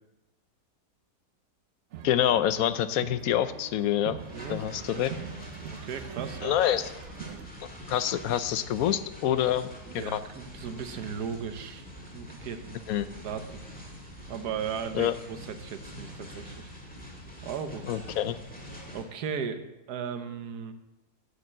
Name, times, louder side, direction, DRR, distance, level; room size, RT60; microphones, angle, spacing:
sound 1, 1.9-7.5, right 9 dB, 65° right, 0.8 m, -44 dB
voice 1, 2.0-4.2 4.5-5.1 6.4-6.9 7.9-9.7 9.9-10.2 12.9-13.1 14.9-15.1 17.8-18.4, left 11 dB, 70° left, 13 dB, 1.0 m, -26 dB
sound 2, 4.2-19.0, equal, 5° left, 1.8 m, -45 dB
voice 2, 4.3-5.3 5.6-6.6 9.3-9.4 9.9-12.8 13.2-13.4 14.3-16.7 17.4-18.1 18.9-19.6 19.9-20.7, right 7 dB, 85° right, 9 dB, 1.4 m, -37 dB
9.9 x 6.6 x 7.5 m, 0.98 s
omnidirectional pair, 1.6 m